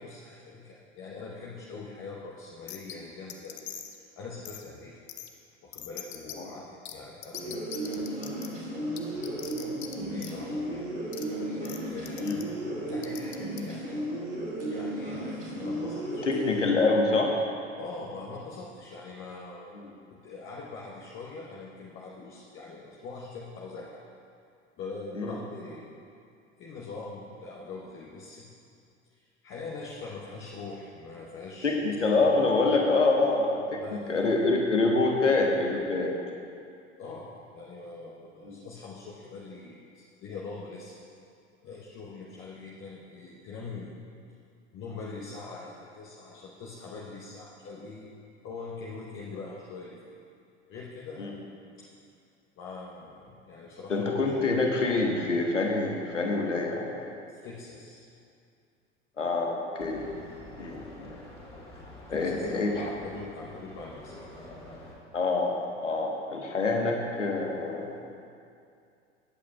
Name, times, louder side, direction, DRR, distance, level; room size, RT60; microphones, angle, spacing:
voice 1, 0.0-4.9 5.6-7.6 7.9-8.4 9.1-9.4 10.0-14.0 14.7-16.3 17.8-19.7 20.1-24.0 24.8-26.0 26.6-28.5 29.1-31.9 33.8-34.4 37.0-41.0 41.6-43.9 44.7-48.1 48.4-50.2 50.7-51.3 52.6-54.3 57.3-58.0 62.1-64.3, left 3 dB, 35° left, -4 dB, 1.2 m, -43 dB
sound 1, 2.7-2.9 3.3-3.9 4.4-4.6 5.1-5.3 5.7-6.3 6.8-6.9 7.2-8.5 9.0-9.9 10.2-10.3 11.1-11.2 11.6-11.8 12.1-12.4 13.0-13.6, left 11 dB, 60° left, 0.9 m, -41 dB
sound 2, 7.3-16.6, right 1 dB, 85° right, 2.3 m, -34 dB
voice 2, 16.3-17.4 19.7-19.9 25.1-25.4 31.6-36.1 38.4-38.6 51.2-51.3 53.9-57.1 59.2-60.1 60.6-61.1 62.1-62.9 65.1-68.0, left 3 dB, 80° left, 1 dB, 1.3 m, -26 dB
sound 3, 59.8-64.9, left 1 dB, 15° left, 2.0 m, -47 dB
18.0 x 8.5 x 2.4 m, 2.4 s
figure-of-eight pair, 80°, 36 cm